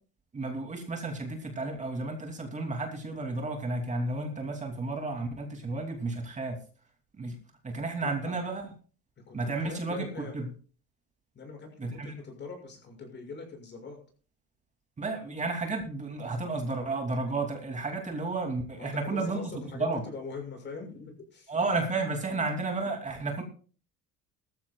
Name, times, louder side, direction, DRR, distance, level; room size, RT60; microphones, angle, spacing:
voice 1, 0.3-6.6 7.1-7.4 7.6-8.7 9.3-10.1 10.3-10.5 11.8-12.2 15.0-19.4 19.7-20.0 21.5-23.4, right 3 dB, 25° right, 3 dB, 2.7 m, -32 dB
voice 2, 8.0-8.4 9.3-10.4 11.3-14.0 18.8-21.5 22.3-22.4, left 4 dB, 35° left, 3 dB, 6.4 m, -42 dB
19.5 x 14.0 x 2.3 m, 0.39 s
cardioid pair, 115°, 30 cm